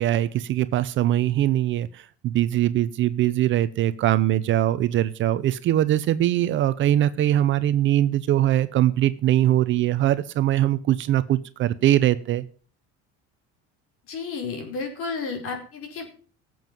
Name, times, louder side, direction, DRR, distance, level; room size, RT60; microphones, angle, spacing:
voice 1, 0.0-12.5, right 13 dB, 40° right, 14 dB, 0.7 m, -22 dB
voice 2, 14.1-16.1, left 4 dB, 50° left, 3 dB, 4.7 m, -32 dB
17.0 x 7.8 x 5.4 m, 0.40 s
cardioid pair, 160°, 29 cm